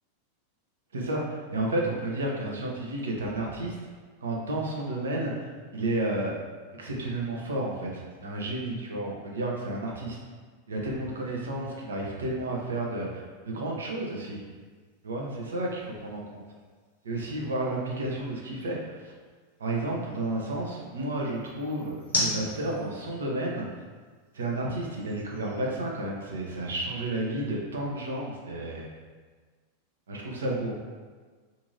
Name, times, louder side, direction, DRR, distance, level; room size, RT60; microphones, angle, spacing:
voice 1, 0.9-3.8 4.2-6.3 6.8-10.2 10.7-14.4 15.0-16.4 17.0-19.0 19.6-23.6 24.3-28.8 30.1-30.8, right 1 dB, 70° right, -2 dB, 0.5 m, -31 dB
sound 1, 12.3-26.6, left 1 dB, 70° left, 0.7 m, -41 dB
2.7 x 2.5 x 2.6 m, 1.4 s
figure-of-eight pair, 90°, 0 cm